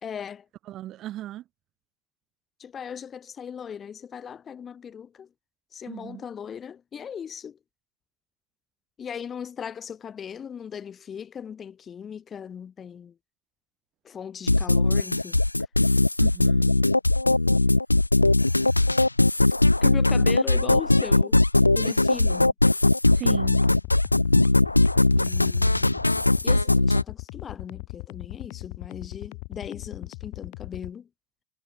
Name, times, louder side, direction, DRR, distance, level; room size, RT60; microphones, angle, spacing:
voice 1, 0.0-0.5 2.6-5.3 5.7-7.6 9.0-13.2 14.0-15.4 19.8-21.4 21.7-22.5 25.2-26.0 26.4-31.1, left 7 dB, 20° left, 1.1 m, -38 dB
voice 2, 0.7-1.4 5.9-6.2 16.2-16.8 23.1-23.7, right 13 dB, 35° right, 2.2 m, -36 dB
sound 1, 14.5-27.0, left 2 dB, 85° left, 0.3 m, -20 dB
sound 2, 23.1-30.9, left 38 dB, 45° left, 2.0 m, -38 dB
figure-of-eight pair, 90°, 0 cm